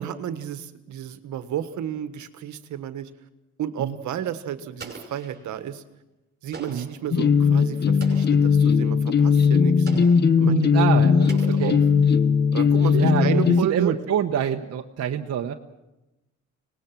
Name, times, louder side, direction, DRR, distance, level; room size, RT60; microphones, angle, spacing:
voice 1, 0.0-3.1 3.6-5.8 6.4-9.9 10.4-11.3 11.6-11.8 12.5-13.9, right 10 dB, 75° right, 10 dB, 1.5 m, -32 dB
Explosion, 4.8-5.7 6.5-7.1 8.0-8.5 9.9-10.4 11.3-12.2, right 4 dB, 35° right, 5.7 m, -42 dB
sound 1, 7.1-13.6, left 6 dB, 35° left, 0.8 m, -18 dB
voice 2, 10.4-12.1 12.9-15.5, right 9 dB, 55° right, 3 dB, 1.1 m, -26 dB
25.0 x 19.5 x 6.1 m, 0.97 s
cardioid pair, 90°, 30 cm